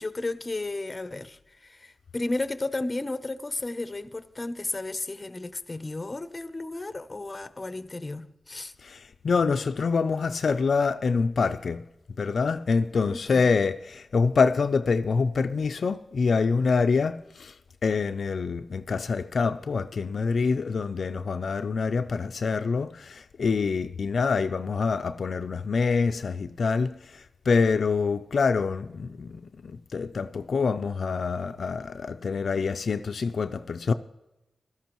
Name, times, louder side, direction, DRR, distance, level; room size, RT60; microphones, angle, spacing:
voice 1, 0.0-8.7 13.1-13.5, left 2 dB, 25° left, 0.7 m, -33 dB
voice 2, 8.8-11.9 12.2-17.5 17.8-33.9, left 5 dB, 65° left, 0.4 m, -26 dB
16.5 x 13.0 x 3.0 m
wide cardioid pair, 90°, 0 cm